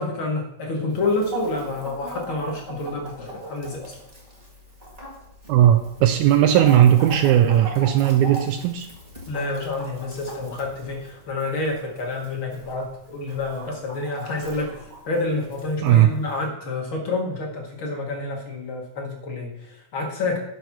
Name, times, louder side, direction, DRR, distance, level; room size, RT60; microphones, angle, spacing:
voice 1, 0.0-3.9 9.3-20.4, left 3 dB, 60° left, 0 dB, 1.5 m, -28 dB
Chicken rooster, 0.9-16.5, right 2 dB, 25° right, 0.8 m, -40 dB
voice 2, 5.5-8.9 15.8-16.1, right 11 dB, 80° right, 7 dB, 1.9 m, -17 dB
10.5 x 4.6 x 5.8 m, 0.82 s
omnidirectional pair, 3.6 m